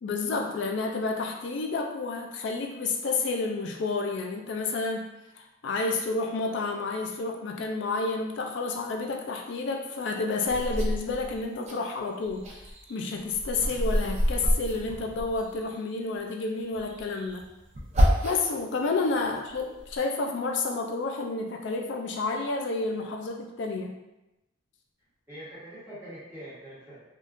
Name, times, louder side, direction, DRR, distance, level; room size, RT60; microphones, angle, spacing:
voice 1, 0.0-12.6 12.9-17.5 18.2-24.0, left 3 dB, 60° left, 2 dB, 0.3 m, -30 dB
sound 1, 10.5-11.8 12.2-15.7 16.7-18.6 19.1-20.0, equal, 35° right, 0.5 m, -28 dB
voice 2, 25.3-27.0, equal, 10° right, -11 dB, 1.3 m, -43 dB
3.5 x 2.4 x 2.5 m, 0.98 s
head